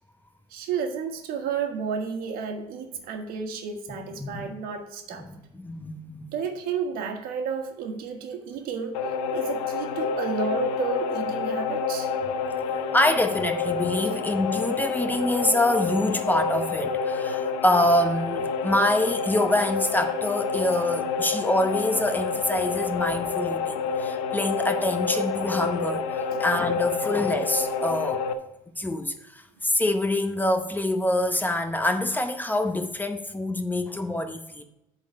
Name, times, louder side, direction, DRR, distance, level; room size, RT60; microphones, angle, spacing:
voice 1, 0.5-5.3 6.3-8.9 9.3-12.1 26.3-26.4, right 6 dB, 70° right, 4 dB, 1.4 m, -32 dB
voice 2, 3.9-4.3 5.2-6.3 12.9-28.2 28.8-34.6, left 1 dB, 10° left, 7 dB, 0.8 m, -26 dB
sound 1, 8.9-28.3, left 5 dB, 90° left, 0.7 m, -28 dB
8.1 x 4.0 x 6.3 m, 0.89 s
supercardioid pair, 90°, 16 cm